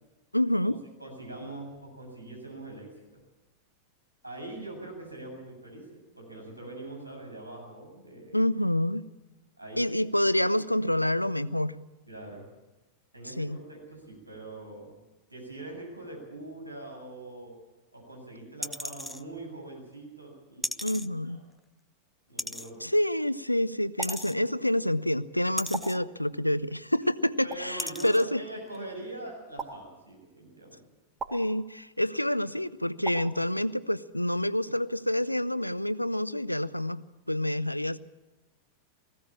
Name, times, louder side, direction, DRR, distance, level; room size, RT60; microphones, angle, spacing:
voice 1, 0.3-0.8 8.3-9.1 9.8-11.8 13.4-13.6 20.8-21.4 22.8-28.4 31.3-38.0, left 1 dB, 90° left, 17 dB, 0.6 m, -27 dB
voice 2, 1.0-2.9 4.2-8.4 9.6-9.8 12.1-12.5 13.1-14.9 15.3-17.6 17.9-21.4 22.3-22.9 27.4-30.9, right 2 dB, 85° right, 0 dB, 7.9 m, -43 dB
sound 1, 18.6-19.2 20.6-21.1 22.4-22.7 24.0-24.4 25.6-26.0 27.0-27.1 27.8-28.2 28.7-28.8, left 1 dB, 5° left, 0.6 m, -35 dB
sound 2, 24.0-24.1 25.7-25.9 27.5-27.6 29.6-29.7 31.2-31.3 33.0-33.2, right 4 dB, 20° right, 3.3 m, -35 dB
19.5 x 16.0 x 8.7 m, 1.1 s
figure-of-eight pair, 90°, 0 cm